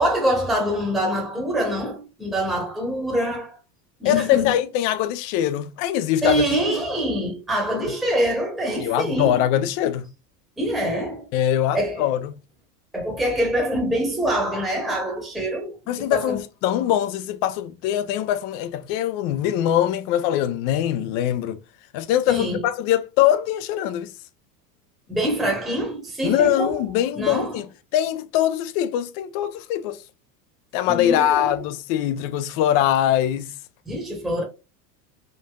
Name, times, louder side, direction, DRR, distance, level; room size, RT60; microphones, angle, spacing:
voice 1, 0.0-3.6 4.0-4.5 6.2-9.4 10.6-11.3 11.7-12.1 12.9-15.7 16.1-16.4 22.3-22.6 25.1-26.8 27.1-27.6 30.8-31.6 33.9-34.4, equal, ahead, 1.0 m, -24 dB
voice 2, 4.0-6.5 8.8-10.1 11.3-12.4 15.9-21.6 21.9-24.1 26.2-27.7 27.9-30.0 30.7-33.5, left 11 dB, 45° left, 0.5 m, -22 dB
3.8 x 2.5 x 2.2 m
hypercardioid pair, 105°, 49 cm